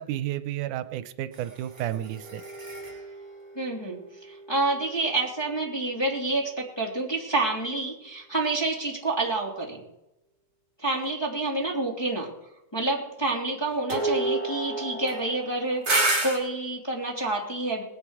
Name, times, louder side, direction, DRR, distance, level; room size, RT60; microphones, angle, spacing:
voice 1, 0.0-2.4, right 12 dB, 85° right, 12 dB, 2.2 m, -32 dB
sound 1, 1.3-4.8 13.9-16.4, right 2 dB, 30° right, 2.9 m, -30 dB
voice 2, 3.5-9.8 10.8-12.3 12.7-17.8, right 2 dB, 10° left, -4 dB, 2.4 m, -28 dB
19.5 x 10.5 x 4.8 m, 0.90 s
omnidirectional pair, 3.5 m